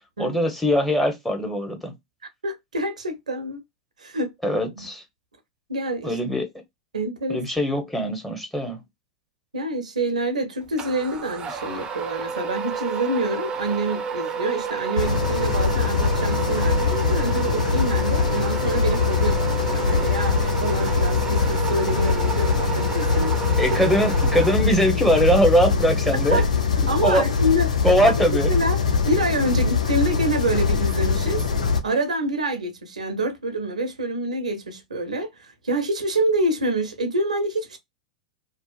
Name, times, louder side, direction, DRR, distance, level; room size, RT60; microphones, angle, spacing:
voice 1, 0.2-1.9 4.4-5.0 6.0-6.5 7.3-8.8 23.6-26.4 27.0-27.2 27.8-28.5, equal, 5° left, 0.9 m, -21 dB
voice 2, 2.4-3.6 4.0-4.3 4.8-4.9 5.7-6.2 6.9-7.4 9.5-23.4 26.3-26.4 26.9-27.7 28.5-28.8 29.0-31.4 31.8-37.8, right 1 dB, 85° right, 0.6 m, -26 dB
sound 1, 10.8-25.0, right 6 dB, 25° right, 0.5 m, -30 dB
sound 2, 15.0-31.8, left 5 dB, 80° left, 0.4 m, -22 dB
2.7 x 2.1 x 2.3 m
figure-of-eight pair, 90°, 4 cm